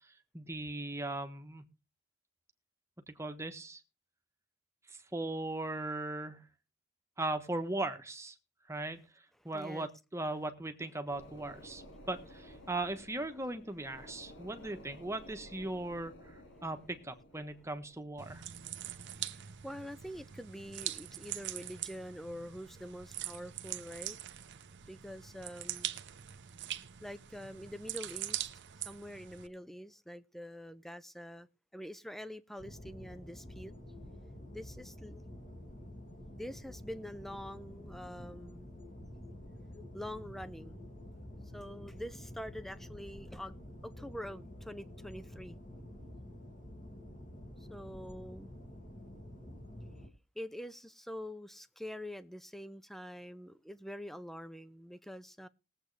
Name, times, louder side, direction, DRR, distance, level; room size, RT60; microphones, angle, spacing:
voice 1, 0.3-1.6 3.1-3.8 5.1-6.4 7.2-8.3 8.7-9.0 9.4-18.4, right 2 dB, 15° right, 1.2 m, -38 dB
voice 2, 9.5-9.9 19.2-24.2 24.9-25.9 27.0-28.5 28.8-31.5 31.7-33.7 34.5-35.2 36.4-38.7 39.9-40.8 41.5-45.6 47.7-48.5 50.4-55.5, equal, ahead, 0.6 m, -45 dB
sound 1, 11.1-21.1 21.5-21.6, equal, 65° left, 2.5 m, -55 dB
sound 2, 18.2-29.5, right 12 dB, 60° right, 0.7 m, -43 dB
sound 3, 32.6-50.1, left 1 dB, 40° left, 2.3 m, -49 dB
20.0 x 7.9 x 3.3 m
head